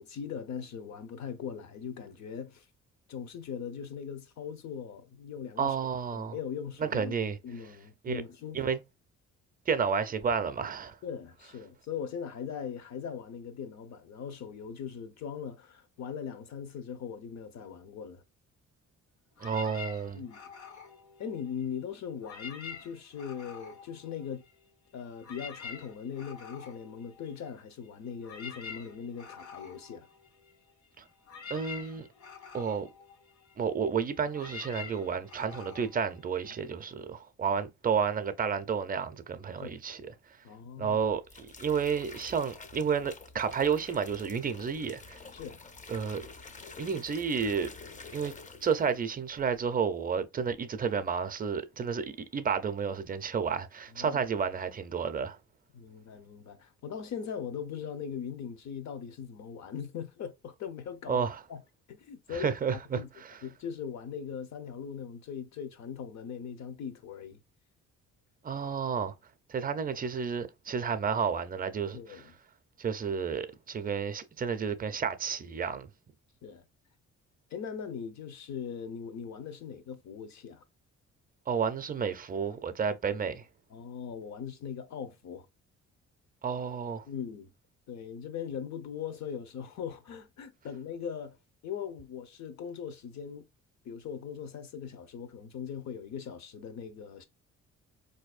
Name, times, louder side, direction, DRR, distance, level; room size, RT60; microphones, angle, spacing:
voice 1, 0.0-2.7 3.1-5.7 6.1-8.7 11.0-18.2 20.1-20.4 21.2-24.4 24.9-30.1 39.6-39.8 40.4-41.0 45.3-45.6 53.9-54.2 55.7-61.6 61.9-62.5 62.9-63.1 63.4-67.4 71.9-72.3 76.4-76.7 77.5-80.6 83.7-85.5 87.1-87.5 87.9-91.4 91.6-93.5 93.8-97.2, left 7 dB, 65° left, 0.8 m, -40 dB
voice 2, 5.6-6.4 6.8-7.4 8.0-8.2 8.5-8.8 9.7-11.0 19.4-20.2 31.0-31.1 31.5-32.1 32.5-32.9 33.6-40.1 40.8-45.2 45.9-46.2 46.8-47.7 48.1-55.4 61.1-61.4 62.3-63.4 68.4-69.1 69.5-72.3 72.8-75.9 81.5-83.5 86.4-87.0, right 6 dB, 30° right, 0.5 m, -31 dB
sound 1, 19.4-21.8 22.1-24.7 25.0-36.9, left 6 dB, 80° left, 1.6 m, -47 dB
sound 2, 41.1-49.0 49.3-49.7, left 4 dB, 25° left, 0.5 m, -48 dB
4.1 x 2.7 x 2.4 m
cardioid pair, 90°, 30 cm